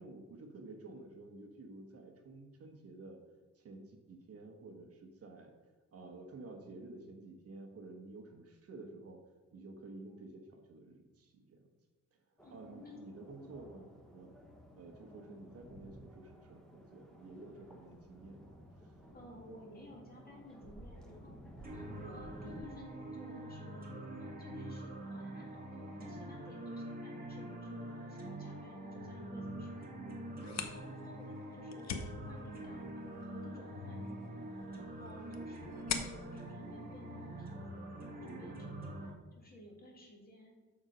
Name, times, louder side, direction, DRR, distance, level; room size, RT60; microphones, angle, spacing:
voice 1, 0.0-3.2 3.5-5.5 5.9-9.2 9.5-11.6 12.5-14.4 14.7-19.0, right 2 dB, 45° right, 4 dB, 1.0 m, -51 dB
voice 2, 12.4-13.0 13.4-13.5 15.0-15.4 19.1-21.4 21.7-23.9 24.2-29.9 30.4-31.9 32.2-34.4 34.9-35.9 36.3-39.0 39.4-40.5, left 1 dB, 25° left, -1 dB, 1.8 m, -55 dB
sound 1, 12.4-22.6, equal, ahead, 0.9 m, -55 dB
sound 2, 21.6-39.1, right 1 dB, 25° right, 1.5 m, -45 dB
sound 3, 30.3-37.8, left 6 dB, 55° left, 0.8 m, -45 dB
7.1 x 6.5 x 5.0 m, 1.3 s
cardioid pair, 165°, 33 cm